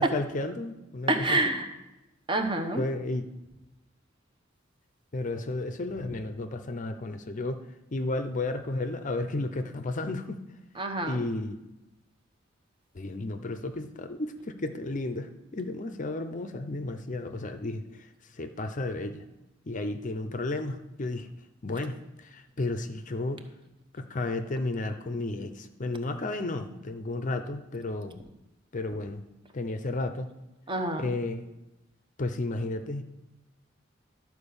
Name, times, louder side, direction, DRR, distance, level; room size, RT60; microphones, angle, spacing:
voice 1, 0.0-1.6 2.7-3.2 5.1-7.6 7.9-10.4 11.0-11.6 12.9-17.8 18.4-19.2 19.7-21.3 21.6-23.5 23.9-28.2 28.7-29.2 29.5-30.3 31.0-31.5 32.2-33.0, left 2 dB, 40° left, 8 dB, 0.6 m, -33 dB
voice 2, 1.1-1.7 2.3-2.9 10.7-11.3 30.7-31.1, right 2 dB, 25° right, 5 dB, 1.0 m, -27 dB
11.5 x 4.6 x 6.9 m, 0.99 s
head